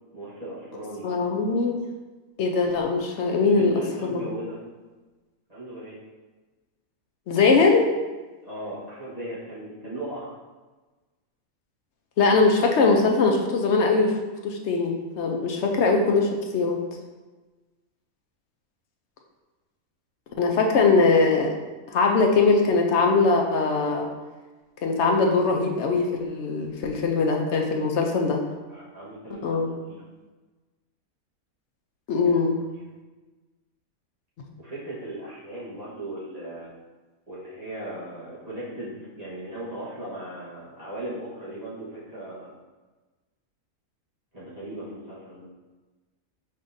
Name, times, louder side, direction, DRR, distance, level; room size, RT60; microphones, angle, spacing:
voice 1, 0.1-1.2 3.4-4.6 5.5-6.0 8.4-10.4 15.6-15.8 27.9-28.1 28.7-29.6 29.9-30.0 32.2-32.4 34.6-36.7 37.3-42.5 44.3-45.5, right 1 dB, 30° right, -9 dB, 1.2 m, -37 dB
voice 2, 1.0-1.8 2.4-3.7 4.0-4.3 7.3-7.8 12.2-14.2 14.4-16.8 20.4-21.5 21.9-24.1 24.8-28.4 29.4-29.7 32.1-32.6, left 4 dB, 65° left, 2 dB, 0.7 m, -21 dB
5.5 x 3.6 x 2.6 m, 1.2 s
omnidirectional pair, 1.6 m